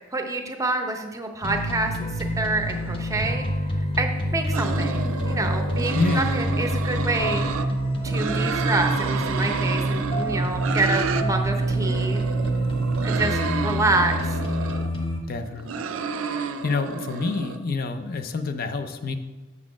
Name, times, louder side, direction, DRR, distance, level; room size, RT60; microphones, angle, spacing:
voice 1, 0.1-3.5 4.0-7.5 8.0-12.2 13.0-14.4, right 2 dB, 15° right, 4 dB, 0.6 m, -27 dB
sound 1, 1.4-15.2, equal, 25° left, 0.9 m, -26 dB
sound 2, 4.5-7.7 8.0-11.3 11.6-14.9 15.4-17.6, right 5 dB, 80° right, 0.5 m, -30 dB
voice 2, 6.0-6.4 15.3-15.7 16.6-19.2, left 3 dB, 45° left, 8 dB, 0.4 m, -27 dB
7.3 x 4.1 x 6.0 m, 1.2 s
head